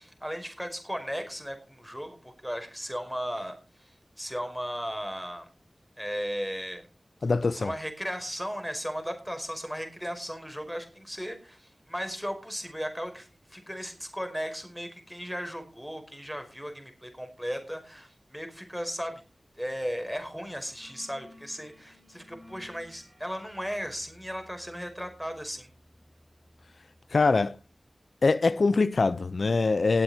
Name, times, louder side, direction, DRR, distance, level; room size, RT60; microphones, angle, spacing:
voice 1, 0.0-5.5 6.0-6.9 7.5-19.2 19.6-25.7, equal, ahead, 5.1 m, -36 dB
voice 2, 7.2-7.7 27.1-27.6 28.2-30.0, left 3 dB, 75° left, 0.6 m, -23 dB
sound 1, 20.0-20.2 20.5-27.1, left 1 dB, 20° right, 4.8 m, -56 dB
19.0 x 7.9 x 4.4 m
wide cardioid pair, 45°, 0 cm